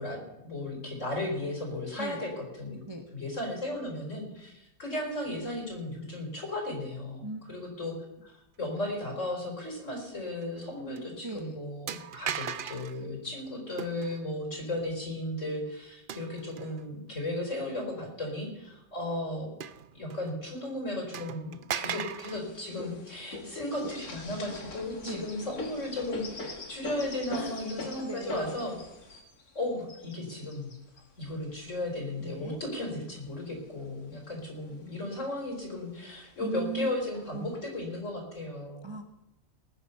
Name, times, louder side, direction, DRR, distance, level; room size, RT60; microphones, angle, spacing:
voice 1, 0.0-2.8 3.1-7.9 8.2-19.5 19.9-28.7 29.5-30.7 31.2-38.9, left 1 dB, 55° left, 0 dB, 4.5 m, -35 dB
sound 1, 10.4-10.6 11.0-11.1 11.9-13.0 13.8-14.2 16.1-16.8 17.4-17.5 19.6-20.3 20.6-20.7 21.1-22.4, right 8 dB, 60° right, 0.5 m, -37 dB
voice 2, 11.2-11.6 25.0-25.3 27.3-27.7 28.0-28.8 32.2-32.6 36.4-36.9 37.3-37.6 38.8-39.0, right 3 dB, 20° right, 4 dB, 0.9 m, -38 dB
sound 2, 22.3-32.6 33.2-34.2 34.6-34.7 35.0-35.7 36.4-36.5 37.1-37.6, left 3 dB, 80° left, 2.4 m, -42 dB
20.0 x 9.1 x 5.6 m, 0.92 s
omnidirectional pair, 1.6 m